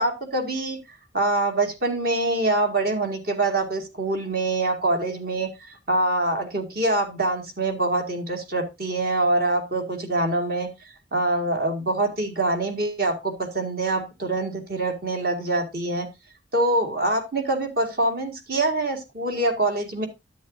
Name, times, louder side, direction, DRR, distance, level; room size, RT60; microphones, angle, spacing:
voice 1, 0.0-16.1 16.5-20.1, right 2 dB, 50° right, 4 dB, 2.0 m, -25 dB
10.5 x 8.4 x 2.7 m, 0.23 s
head